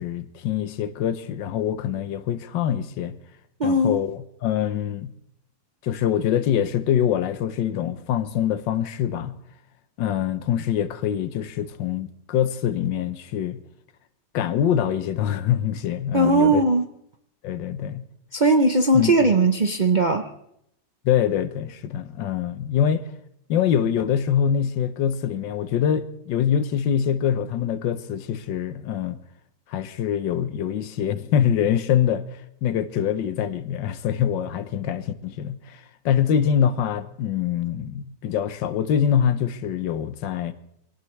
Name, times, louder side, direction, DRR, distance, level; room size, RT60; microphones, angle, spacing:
voice 1, 0.0-3.1 3.6-5.1 5.8-9.3 10.0-13.6 14.3-16.6 17.4-18.0 18.9-19.2 21.0-23.0 23.5-29.2 29.7-32.2 32.6-40.5, left 9 dB, 80° left, 1.6 m, -24 dB
voice 2, 3.6-4.0 16.1-16.8 18.3-20.3, right 2 dB, 45° right, 0.6 m, -19 dB
25.0 x 18.0 x 3.2 m
omnidirectional pair, 2.0 m